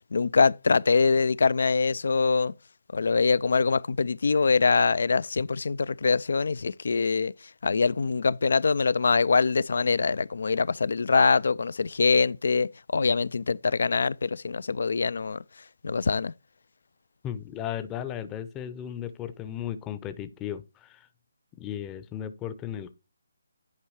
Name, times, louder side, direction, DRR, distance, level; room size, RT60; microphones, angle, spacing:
voice 1, 0.1-2.5 2.9-7.3 7.6-15.4 15.8-16.3, left 4 dB, 65° left, 0.3 m, -24 dB
voice 2, 17.2-21.1 21.6-22.9, left 10 dB, 15° left, 0.6 m, -35 dB
10.5 x 4.6 x 3.1 m
figure-of-eight pair, 155°, 0 cm